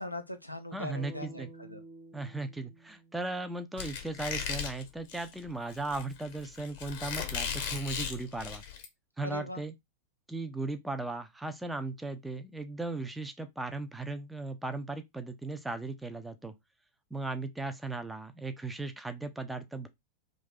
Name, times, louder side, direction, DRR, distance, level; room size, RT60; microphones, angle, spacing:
voice 1, 0.0-1.8 9.2-9.6, left 1 dB, 85° left, 0.4 m, -40 dB
voice 2, 0.7-1.5 2.1-8.6 9.2-9.7 10.3-16.5 17.1-19.9, right 2 dB, 5° right, 0.5 m, -37 dB
sound 1, 0.9-5.0, right 2 dB, 45° right, 0.7 m, -53 dB
Squeak, 3.8-8.9, left 7 dB, 50° left, 0.8 m, -37 dB
2.6 x 2.5 x 3.6 m
figure-of-eight pair, 90°, 0 cm